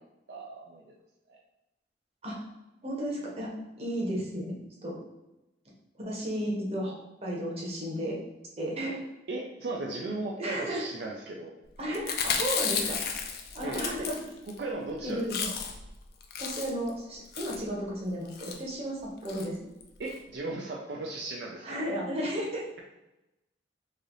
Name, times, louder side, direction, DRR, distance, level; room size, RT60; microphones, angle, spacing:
voice 1, 0.3-0.9 1.3-1.4 9.3-11.5 13.6-14.1 14.6-15.5 20.0-21.7, right 2 dB, 70° right, -1 dB, 0.4 m, -36 dB
voice 2, 2.8-4.5 4.8-5.0 5.9-6.9 7.2-8.2 8.6-9.0 10.4-10.9 11.8-13.1 13.5-14.2 15.0-15.3 16.4-19.6 21.6-22.6, equal, 35° right, -3 dB, 1.0 m, -33 dB
Chewing mastication, 11.9-14.6 14.9-15.0 15.2-15.9 16.2-16.9 17.3-17.6 18.3-18.6 19.2-19.5 19.8-19.9 20.1-20.2, left 6 dB, 60° left, 0.4 m, -32 dB
3.2 x 2.7 x 3.9 m, 0.96 s
head